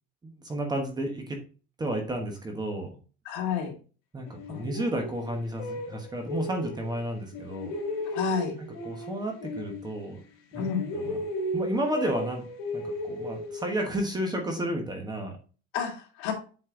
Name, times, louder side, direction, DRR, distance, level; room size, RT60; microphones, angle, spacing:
voice 1, 0.2-1.4 1.8-2.9 4.1-7.8 8.8-10.2 10.5-11.2 11.5-12.4 12.7-15.4, right 1 dB, 15° right, 3 dB, 1.2 m, -32 dB
voice 2, 3.2-3.7 4.5-4.7 8.1-8.5 10.6-10.9 15.7-16.3, left 7 dB, 65° left, 0 dB, 2.7 m, -30 dB
sound 1, 4.3-7.0 7.3-10.3 10.5-14.1, left 1 dB, 85° left, 2.5 m, -35 dB
7.8 x 4.4 x 3.7 m, 0.36 s
cardioid pair, 165°, 30 cm